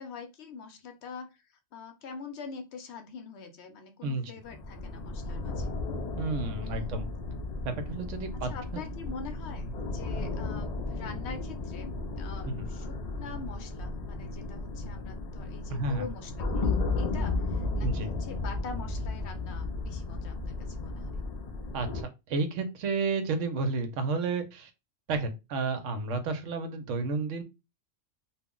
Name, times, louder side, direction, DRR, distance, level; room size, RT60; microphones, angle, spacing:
voice 1, 0.0-5.8 6.6-7.0 8.3-21.2, left 5 dB, 65° left, 6 dB, 0.8 m, -44 dB
sound 1, 4.4-22.0, left 3 dB, 90° left, 0.3 m, -34 dB
voice 2, 6.2-7.1 7.6-8.8 12.4-12.7 15.7-16.0 17.8-18.1 21.7-24.7 25.1-27.4, right 3 dB, 80° right, 8 dB, 0.9 m, -31 dB
2.4 x 2.0 x 3.6 m, 0.26 s
omnidirectional pair, 1.3 m